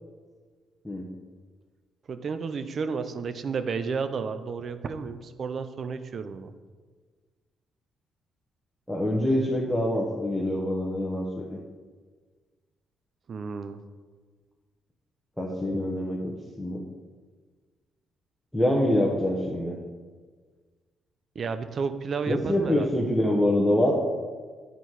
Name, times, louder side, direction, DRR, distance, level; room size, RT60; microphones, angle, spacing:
voice 1, 2.1-6.5 13.3-13.8 21.3-22.9, right 5 dB, 50° right, 11 dB, 0.5 m, -32 dB
voice 2, 8.9-11.6 15.4-16.3 16.6-16.8 18.5-19.8 22.3-23.9, left 1 dB, 5° left, -3 dB, 1.0 m, -25 dB
9.0 x 4.1 x 4.6 m, 1.5 s
cardioid pair, 90°, 0 cm